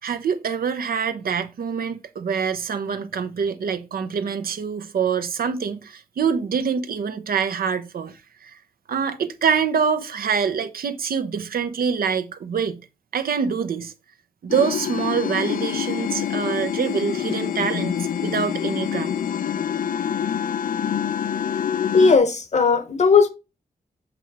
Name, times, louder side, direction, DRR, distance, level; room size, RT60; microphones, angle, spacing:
voice 1, 0.0-8.6 8.9-12.8 13.1-13.9 14.4-19.2, right 6 dB, 70° right, 0.8 m, -25 dB
sound 1, 14.5-22.2, left 9 dB, 60° left, 0.4 m, -26 dB
voice 2, 21.9-23.3, left 5 dB, 45° left, 0.9 m, -16 dB
7.6 x 3.0 x 4.8 m
wide cardioid pair, 130°, 16 cm